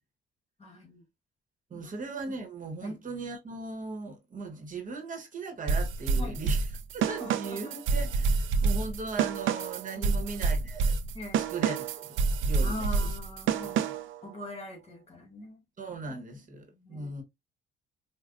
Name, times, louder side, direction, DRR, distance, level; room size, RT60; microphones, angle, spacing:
voice 1, 0.6-1.0 1.7-1.9 2.8-2.9 6.2-6.4 7.2-7.8 10.0-10.2 11.1-11.5 12.6-13.9 14.2-15.6 16.3-16.4 16.7-17.1, left 1 dB, 30° left, 2.0 m, -42 dB
voice 2, 1.7-11.0 11.3-13.1 13.6-13.8 15.8-17.2, right 3 dB, 40° right, 1.2 m, -38 dB
sound 1, 5.7-14.2, right 4 dB, 80° right, 0.5 m, -28 dB
5.0 x 2.4 x 2.4 m
cardioid pair, 90°, 20 cm